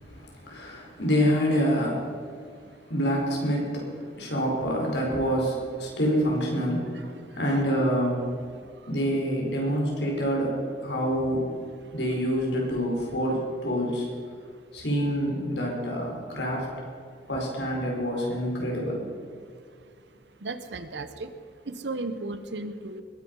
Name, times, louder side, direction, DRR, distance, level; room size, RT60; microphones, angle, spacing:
voice 1, 0.0-2.1 2.9-3.9 4.2-8.2 8.9-11.5 11.9-14.1 14.7-16.7 17.3-19.0, equal, 85° left, -1 dB, 4.8 m, -27 dB
voice 2, 20.4-21.3 21.7-23.0, right 2 dB, 85° right, 11 dB, 1.0 m, -34 dB
21.0 x 10.0 x 5.5 m, 2.2 s
head